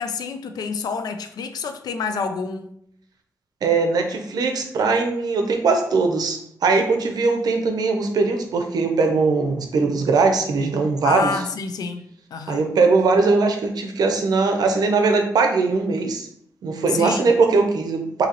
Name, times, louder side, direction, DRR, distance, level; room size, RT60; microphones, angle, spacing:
voice 1, 0.0-2.7 11.0-12.6 16.9-17.3, left 5 dB, 85° left, 0.4 m, -28 dB
voice 2, 3.6-11.3 12.5-16.3 16.6-18.3, right 4 dB, 80° right, 0.6 m, -20 dB
3.9 x 2.7 x 2.9 m
cardioid pair, 85°, 7 cm